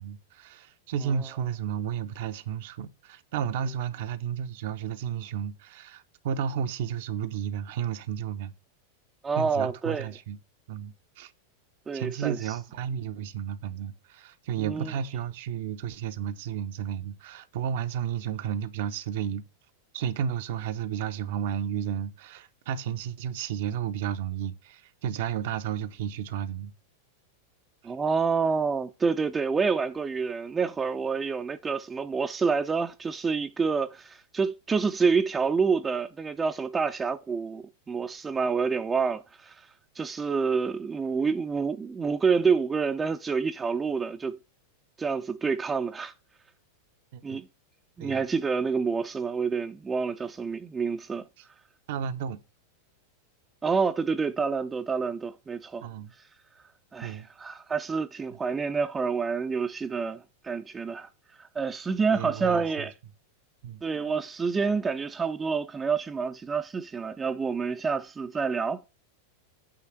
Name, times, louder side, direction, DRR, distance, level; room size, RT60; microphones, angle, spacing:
voice 1, 0.0-8.5 9.4-10.4 10.7-11.3 11.9-19.4 19.9-26.7 27.8-27.9 47.1-47.4 48.0-48.2 51.9-52.4 55.8-56.1 57.0-57.3 62.1-62.9 63.6-63.8, right 8 dB, 50° right, 0.7 m, -32 dB
voice 2, 9.2-10.1 11.9-12.4 14.6-14.9 27.8-39.6 40.0-44.4 45.0-46.1 47.2-47.5 48.0-51.3 53.6-55.9 56.9-61.1 61.4-62.9 63.8-68.8, right 5 dB, 15° right, 0.5 m, -28 dB
8.7 x 3.2 x 6.3 m
figure-of-eight pair, 90°, 0 cm